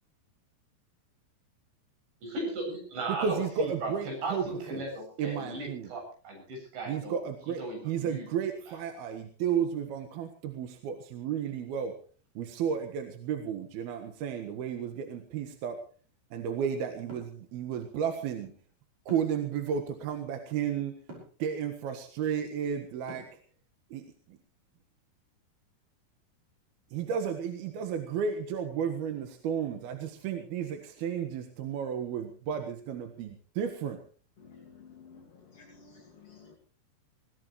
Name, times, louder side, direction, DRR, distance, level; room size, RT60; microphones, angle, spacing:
voice 1, 2.2-7.2 7.6-8.3, right 2 dB, 85° right, 2 dB, 10.0 m, -36 dB
voice 2, 3.1-4.8 5.2-5.9 6.9-11.9 12.4-15.8 16.3-18.5 19.1-20.9 21.4-23.2 23.9-24.4 26.9-34.0, right 7 dB, 65° right, 6 dB, 3.2 m, -33 dB
sound 1, 17.1-17.4 19.1-19.5 21.1-21.4 23.1-23.5, right 1 dB, 40° right, 7.4 m, -46 dB
voice 3, 34.4-36.5, left 5 dB, 40° left, 0 dB, 3.0 m, -53 dB
21.0 x 18.0 x 3.2 m, 0.40 s
omnidirectional pair, 5.0 m